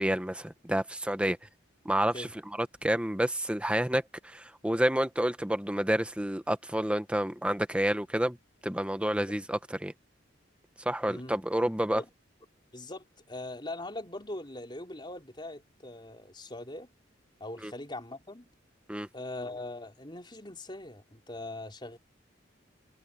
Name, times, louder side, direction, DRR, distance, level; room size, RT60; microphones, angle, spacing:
voice 1, 0.0-1.4 1.8-2.3 2.6-8.4 8.6-9.9 10.8-12.0 17.6-17.7 18.9-19.1, right 1 dB, 5° right, 1.1 m, -29 dB
voice 2, 12.7-16.9 17.4-18.5 19.1-22.0, left 2 dB, 25° left, 4.8 m, -41 dB
head